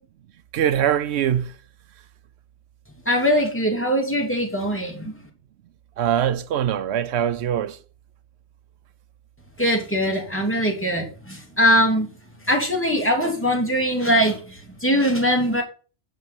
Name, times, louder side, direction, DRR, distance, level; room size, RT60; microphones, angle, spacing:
voice 1, 0.5-1.5 6.0-7.8, right 10 dB, 85° right, 0.9 m, -22 dB
voice 2, 3.1-5.2 9.6-12.1 12.5-15.6, equal, 10° left, 2.6 m, -21 dB
9.3 x 5.8 x 5.7 m
omnidirectional pair, 1.1 m